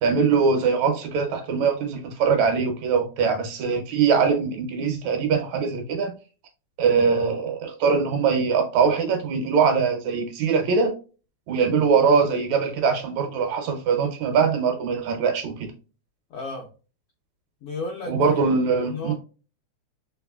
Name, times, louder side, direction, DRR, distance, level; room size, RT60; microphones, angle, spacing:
voice 1, 0.0-6.1 6.8-11.0 11.5-15.7 18.1-19.1, right 5 dB, 75° right, 1.9 m, -22 dB
voice 2, 16.3-16.7 17.6-18.5 18.8-19.1, left 3 dB, 75° left, 1.3 m, -33 dB
4.6 x 3.1 x 2.3 m
omnidirectional pair, 3.5 m